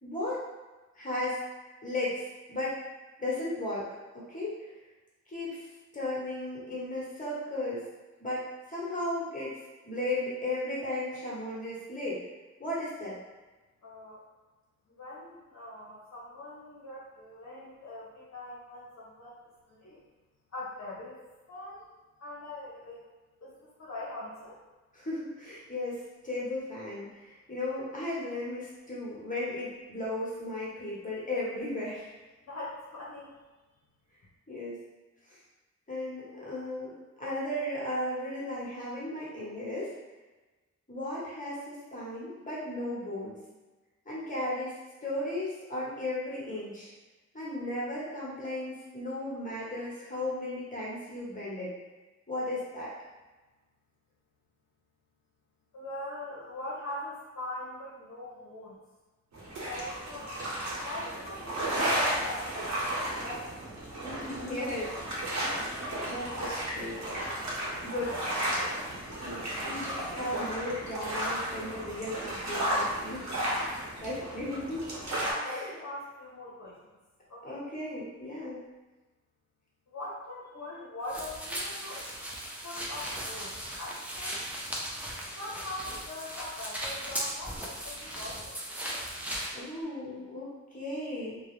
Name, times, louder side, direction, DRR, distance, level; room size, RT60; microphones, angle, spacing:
voice 1, 0.0-0.4 0.9-1.4 1.8-2.8 3.2-3.9 4.1-4.7 5.3-5.7 5.9-7.8 8.2-9.6 9.8-12.2 12.6-13.2 24.9-32.1 34.5-34.8 35.3-35.4 35.9-36.9 37.2-39.9 40.9-43.4 44.0-46.9 47.3-51.7 52.3-52.9 64.0-65.5 66.0-67.0 67.8-68.2 69.2-73.3 74.0-74.8 75.4-75.7 77.4-78.7 89.5-91.4, left 1 dB, 25° left, -7 dB, 1.1 m, -35 dB
voice 2, 13.8-14.2 14.9-19.4 19.7-20.0 20.5-21.2 21.5-21.8 22.2-23.0 23.4-24.6 32.4-33.4 55.7-58.8 59.6-60.4 60.8-63.5 67.8-68.6 74.2-74.3 75.1-76.9 77.3-77.6 79.9-82.2 82.6-84.4 85.4-88.6, left 1 dB, 65° left, -7 dB, 0.7 m, -42 dB
sound 1, 59.3-75.3, right 1 dB, 65° right, 0.9 m, -33 dB
sound 2, 81.1-89.5, equal, 5° right, 0.6 m, -37 dB
2.3 x 2.0 x 3.0 m, 1.2 s
cardioid pair, 55°, 30 cm